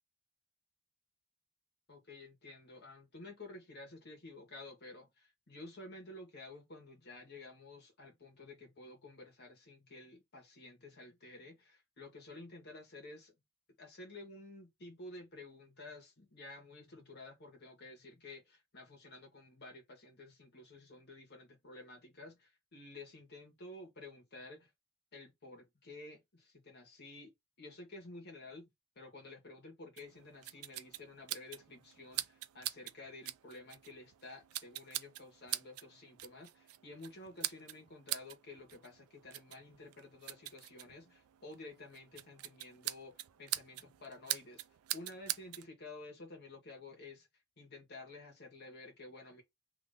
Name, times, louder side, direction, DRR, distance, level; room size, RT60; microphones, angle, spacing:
voice 1, 1.9-13.3 13.8-24.7 25.1-27.3 27.6-28.7 28.9-44.6 44.9-47.3 47.6-49.4, left 2 dB, 50° left, 1.4 m, -52 dB
sound 1, 30.0-45.7, right 15 dB, 85° right, 0.4 m, -44 dB
2.9 x 2.7 x 3.4 m
head